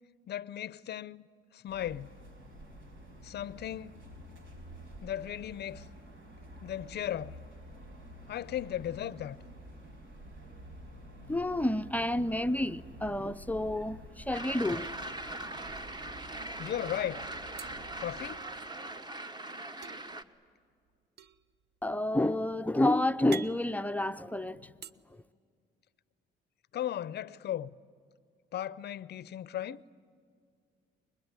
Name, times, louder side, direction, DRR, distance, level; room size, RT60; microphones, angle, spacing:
voice 1, 0.3-1.3 1.5-2.1 3.2-4.1 5.0-5.9 6.6-7.4 8.3-9.4 16.6-17.3 18.0-18.4 26.7-27.7 28.5-29.8, left 11 dB, 55° left, 0.6 m, -36 dB
sound 1, 1.7-18.3, equal, 80° right, 4.9 m, -50 dB
voice 2, 11.3-15.6 21.8-24.6 25.1-25.2, left 1 dB, 10° left, 0.6 m, -30 dB
sound 2, 14.3-20.2, right 2 dB, 20° right, 1.2 m, -41 dB
sound 3, 17.6-18.8 19.8-24.9, right 8 dB, 55° right, 0.8 m, -50 dB
24.5 x 21.5 x 9.7 m
cardioid pair, 90°, 20 cm